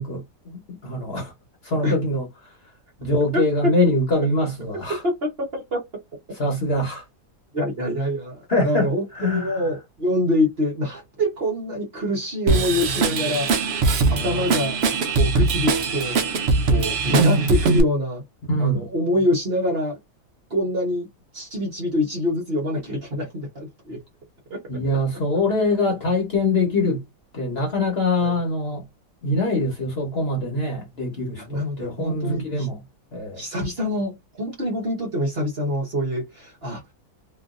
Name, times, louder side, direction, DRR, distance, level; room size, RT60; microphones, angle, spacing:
voice 1, 0.0-1.3 1.6-2.2 3.0-5.0 6.3-7.0 8.5-9.6 14.0-14.5 18.5-18.9 24.7-27.0 27.3-28.8 29.2-32.8 33.1-33.4, left 2 dB, 40° left, 1.2 m, -24 dB
voice 2, 3.3-3.7 5.0-5.3 5.7-5.8 7.5-13.5 14.1-16.2 16.7-18.2 18.6-20.0 20.5-21.1 21.3-24.0 24.5-24.6 28.2-28.3 31.4-32.7 33.4-36.8, left 1 dB, 40° right, 1.2 m, -25 dB
Drum kit / Drum, 12.5-17.8, right 4 dB, 65° right, 0.6 m, -21 dB
3.1 x 2.5 x 2.5 m
omnidirectional pair, 1.8 m